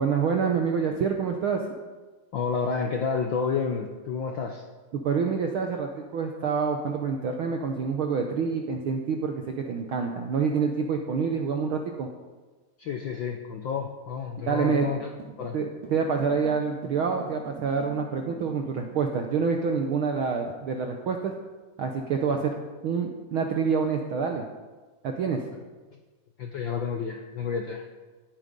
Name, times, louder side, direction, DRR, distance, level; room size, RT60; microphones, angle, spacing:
voice 1, 0.0-1.7 4.9-12.1 14.4-14.9 15.5-21.3 21.8-22.6 22.8-24.4 25.0-25.4, right 5 dB, 70° right, 3 dB, 1.3 m, -27 dB
voice 2, 2.3-4.6 12.8-15.1 15.4-15.6 26.4-27.8, left 5 dB, 85° left, 4 dB, 1.0 m, -30 dB
sound 1, 14.8-19.0, right 5 dB, 85° right, 3.9 m, -45 dB
17.5 x 8.8 x 5.3 m, 1.3 s
omnidirectional pair, 3.4 m